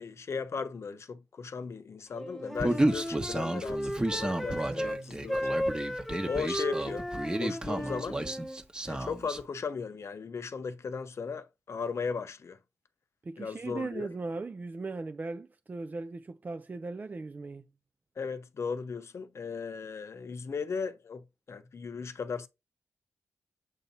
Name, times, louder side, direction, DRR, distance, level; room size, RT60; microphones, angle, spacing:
voice 1, 0.0-5.5 6.3-7.1 7.4-8.2 8.9-12.6 13.4-14.1 18.2-22.5, left 5 dB, 60° left, 0.8 m, -37 dB
Wind instrument woodwind instrument, 2.1-5.0 5.3-8.6, equal, 5° left, 1.2 m, -35 dB
Human voice, 2.6-9.4, right 1 dB, 15° right, 1.1 m, -31 dB
voice 2, 4.7-5.1 13.2-17.7, right 3 dB, 35° right, 0.4 m, -38 dB
8.0 x 2.8 x 5.3 m
wide cardioid pair, 90°, 5 cm